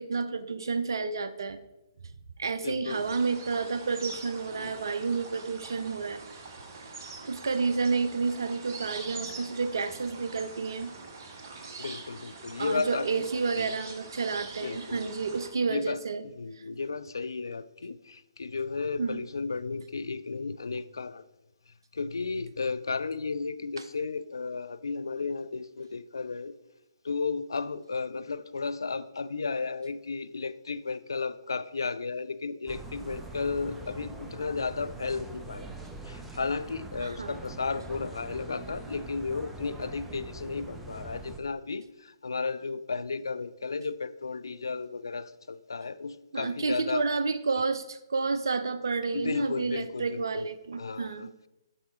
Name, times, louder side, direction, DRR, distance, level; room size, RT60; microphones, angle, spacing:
voice 1, 0.0-1.6 2.4-6.2 7.3-10.9 12.6-16.2 16.6-16.7 19.0-19.2 37.0-37.4 46.3-51.3, right 4 dB, 65° right, 0.6 m, -30 dB
voice 2, 2.6-3.1 4.5-4.9 11.8-13.3 13.6-13.7 14.6-15.0 15.7-21.2 21.9-26.5 27.0-35.7 36.0-47.1 49.1-50.5 50.8-51.5, left 4 dB, 70° left, 0.4 m, -34 dB
sound 1, 2.9-15.5, right 4 dB, 40° right, 1.0 m, -44 dB
sound 2, 32.7-41.4, right 2 dB, 5° right, 0.6 m, -43 dB
7.9 x 5.6 x 3.6 m
figure-of-eight pair, 130°, 2 cm